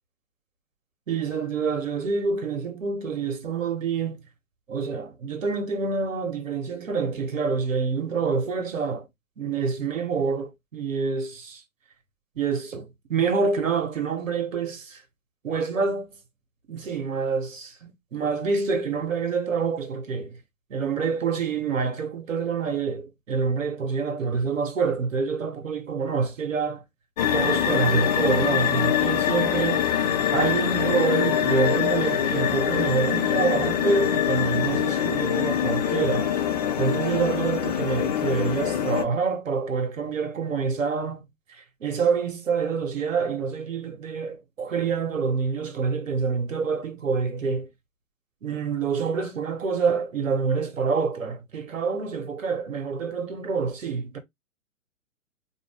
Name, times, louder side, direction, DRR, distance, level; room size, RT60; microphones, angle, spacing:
voice 1, 1.1-4.2 4.7-9.1 9.4-11.6 12.4-15.0 15.4-16.1 16.7-20.4 20.7-26.8 27.3-29.9 30.3-36.3 36.8-47.7 48.4-54.2, right 5 dB, 65° right, 1.3 m, -27 dB
sound 1, 27.2-39.0, left 9 dB, 30° left, 0.5 m, -24 dB
4.3 x 2.7 x 3.3 m
figure-of-eight pair, 120°, 42 cm